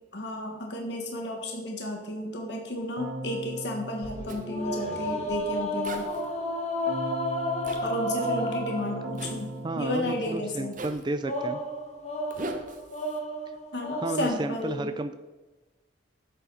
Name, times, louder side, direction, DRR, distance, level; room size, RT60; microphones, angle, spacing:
voice 1, 0.1-6.1 7.8-10.7 13.7-14.9, left 1 dB, 60° left, 2 dB, 1.5 m, -32 dB
Keyboard (musical), 3.0-5.3 6.9-11.1, right 1 dB, 60° right, 1.3 m, -39 dB
sound 1, 4.0-9.5 11.2-14.2, equal, 35° left, 1.4 m, -32 dB
Zipper (clothing), 4.3-4.4 5.8-6.3 7.6-7.8 9.2-9.4 10.7-11.1 12.3-13.2, right 1 dB, 40° right, 1.0 m, -39 dB
voice 2, 9.6-11.6 14.0-15.1, right 2 dB, 25° right, 9 dB, 0.4 m, -32 dB
11.0 x 8.1 x 4.1 m, 1.2 s
head